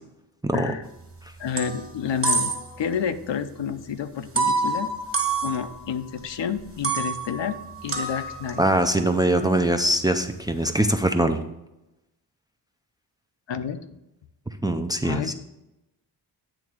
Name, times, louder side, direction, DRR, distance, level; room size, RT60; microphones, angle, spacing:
voice 1, 0.4-0.7 8.6-11.4 14.6-15.3, right 1 dB, 10° right, 6 dB, 0.4 m, -22 dB
sound 1, 0.8-1.1 1.4-2.9 3.2-3.3 4.4-6.2 6.6-11.0, right 3 dB, 30° right, 1.3 m, -28 dB
voice 2, 1.4-2.5 2.8-4.9 5.4-8.6 13.5-13.8 15.0-15.3, left 7 dB, 75° left, 9 dB, 0.7 m, -29 dB
9.1 x 3.5 x 6.2 m, 0.92 s
wide cardioid pair, 135°, 44 cm